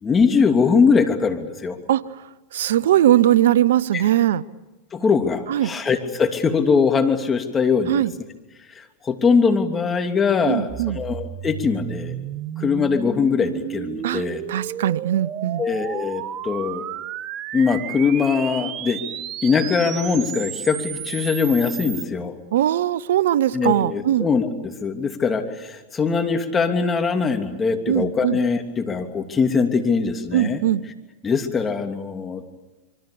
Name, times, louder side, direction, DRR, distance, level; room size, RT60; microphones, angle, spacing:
voice 1, 0.0-1.8 3.9-4.0 4.9-8.0 8.7-12.2 12.6-14.4 15.6-16.8 17.5-19.0 19.4-22.3 23.5-30.6 31.2-32.4, left 5 dB, 20° left, 5 dB, 3.0 m, -21 dB
voice 2, 2.5-4.4 5.5-5.7 7.9-8.1 10.5-11.0 14.0-15.6 22.5-24.3 27.9-28.4 30.3-30.8, right 12 dB, 75° right, 19 dB, 0.9 m, -20 dB
sound 1, 10.7-22.1, right 11 dB, 40° right, 1.2 m, -33 dB
26.0 x 24.0 x 7.0 m, 1.1 s
hypercardioid pair, 105°, 0 cm